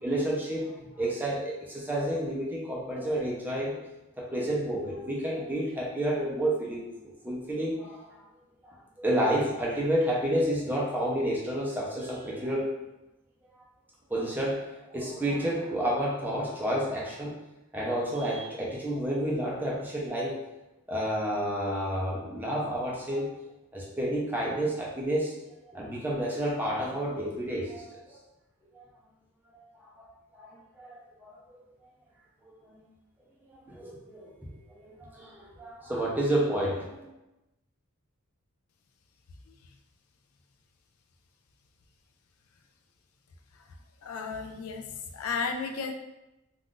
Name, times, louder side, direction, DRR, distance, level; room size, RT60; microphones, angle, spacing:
voice 1, 0.0-3.8 4.2-8.0 8.6-12.7 14.1-14.6 14.9-17.3 17.7-20.4 20.9-23.3 23.7-25.4 25.7-28.2 28.8-28.9 30.4-30.5 30.8-30.9 32.7-32.8 33.5-34.3 35.1-37.0, right 1 dB, 10° right, -5 dB, 0.5 m, -30 dB
voice 2, 44.0-44.9 45.1-45.9, left 5 dB, 80° left, 5 dB, 0.4 m, -33 dB
2.4 x 2.4 x 3.6 m, 0.97 s
head